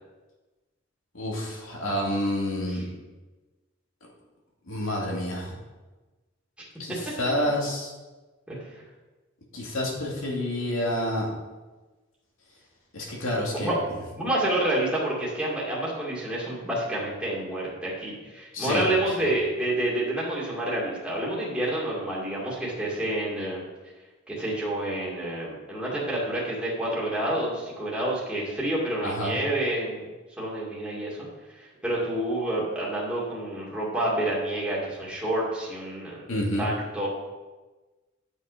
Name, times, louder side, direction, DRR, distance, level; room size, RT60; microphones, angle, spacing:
voice 1, 1.1-2.9 4.7-5.5 6.8-7.9 9.5-11.3 12.9-13.7 18.5-18.9 29.0-29.3 36.3-36.7, left 1 dB, 85° left, -2 dB, 2.5 m, -28 dB
voice 2, 8.5-8.8 13.5-13.7 14.2-23.6 24.3-30.1 30.4-31.3 31.6-37.1, right 1 dB, 5° right, -6 dB, 2.2 m, -28 dB
9.7 x 6.4 x 5.0 m, 1.2 s
head